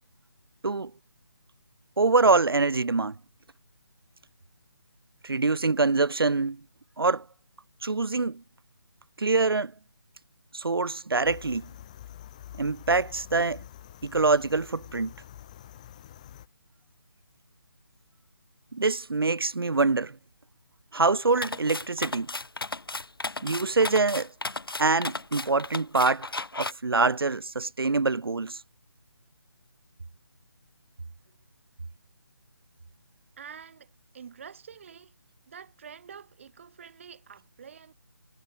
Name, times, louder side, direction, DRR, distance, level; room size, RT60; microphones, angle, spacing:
voice 1, 2.0-3.2 5.2-6.6 7.0-7.2 7.8-8.4 9.2-9.7 10.5-11.7 12.6-13.6 14.0-15.1 18.7-20.2 20.9-22.3 23.4-24.3 24.8-26.3 26.6-28.6, right 3 dB, 85° right, 0.4 m, -25 dB
sound 1, 11.2-16.5, left 12 dB, 20° left, 0.8 m, -47 dB
sound 2, 21.4-26.7, left 3 dB, 80° left, 0.5 m, -34 dB
voice 2, 33.4-35.1 35.5-37.9, right 7 dB, 35° right, 2.5 m, -47 dB
figure-of-eight pair, 150°, 12 cm